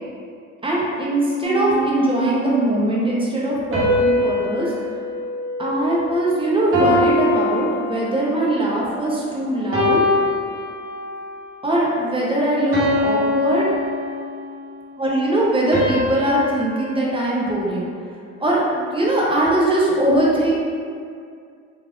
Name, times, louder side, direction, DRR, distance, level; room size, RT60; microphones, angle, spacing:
voice 1, 0.6-4.7 5.6-10.0 11.6-13.7 15.0-17.9 18.4-20.5, right 1 dB, 15° right, -5 dB, 0.7 m, -21 dB
sound 1, 1.4-2.7 3.7-6.2 6.7-8.4 9.0-9.3 9.7-11.3 11.7-12.0 12.7-14.6 15.7-18.1, left 1 dB, 35° right, 1.1 m, -24 dB
3.2 x 2.3 x 2.4 m, 2.3 s
hypercardioid pair, 60°, 38 cm